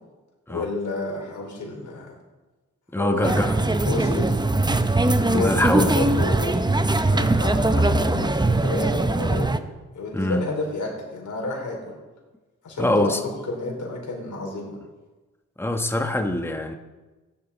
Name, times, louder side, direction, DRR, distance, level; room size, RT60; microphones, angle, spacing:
voice 1, 0.5-2.2 3.0-3.6 3.8-4.4 5.3-6.5 7.1-9.6 9.9-12.0 12.6-14.8, left 2 dB, 70° left, -1 dB, 4.3 m, -30 dB
voice 2, 2.9-3.6 5.2-5.9 10.1-10.4 12.8-13.2 15.6-16.8, left 1 dB, 5° left, 5 dB, 1.3 m, -23 dB
sound 1, 3.2-9.6, right 2 dB, 15° right, 0.8 m, -21 dB
15.0 x 10.5 x 4.2 m, 1.2 s
cardioid pair, 60°, 31 cm